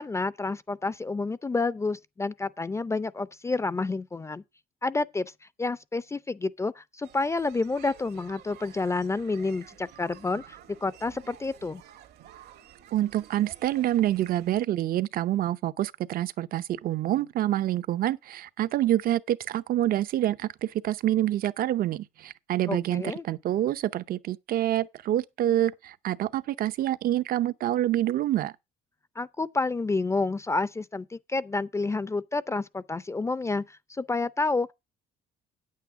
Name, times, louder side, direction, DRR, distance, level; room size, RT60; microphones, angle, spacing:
voice 1, 0.0-4.4 4.8-5.3 5.6-10.6 10.8-11.8 22.7-23.2 29.2-34.7, left 3 dB, 15° left, 0.5 m, -29 dB
sound 1, 7.0-14.6, right 11 dB, 75° right, 1.7 m, -51 dB
voice 2, 12.9-28.5, right 13 dB, 60° right, 0.7 m, -27 dB
9.2 x 8.5 x 4.6 m
cardioid pair, 110°, 17 cm